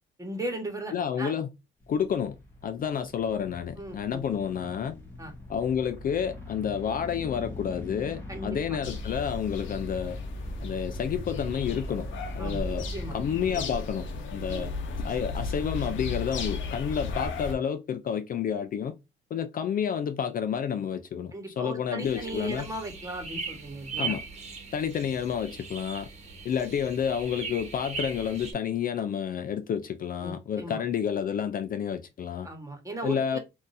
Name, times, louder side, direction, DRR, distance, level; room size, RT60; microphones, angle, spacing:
voice 1, 0.2-1.3 3.8-4.2 5.2-5.3 8.3-8.8 12.4-13.1 14.5-14.7 21.3-24.1 30.2-30.8 32.4-33.4, right 1 dB, 15° right, 1.4 m, -37 dB
voice 2, 0.9-1.5 1.9-2.4 2.6-5.0 5.5-10.2 10.6-12.1 12.3-14.7 15.0-18.9 19.3-22.7 24.0-24.2 24.7-26.1 26.4-32.5 33.0-33.4, left 8 dB, 45° left, 0.4 m, -30 dB
sound 1, 1.8-13.4, left 1 dB, 10° left, 1.3 m, -41 dB
sound 2, 8.8-17.5, left 3 dB, 75° left, 0.8 m, -35 dB
sound 3, 22.0-28.5, right 5 dB, 35° right, 1.2 m, -39 dB
3.7 x 2.6 x 2.6 m
cardioid pair, 90°, 20 cm